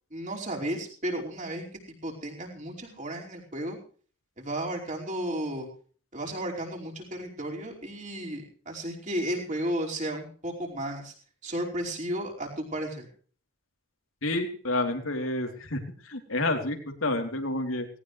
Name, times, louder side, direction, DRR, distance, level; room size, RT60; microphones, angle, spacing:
voice 1, 0.1-1.6 2.0-3.8 4.4-5.7 6.1-11.1 11.4-13.1, right 1 dB, 35° right, -1 dB, 5.0 m, -33 dB
voice 2, 14.2-17.9, left 2 dB, 85° left, 4 dB, 3.4 m, -29 dB
19.0 x 18.0 x 3.3 m, 0.43 s
head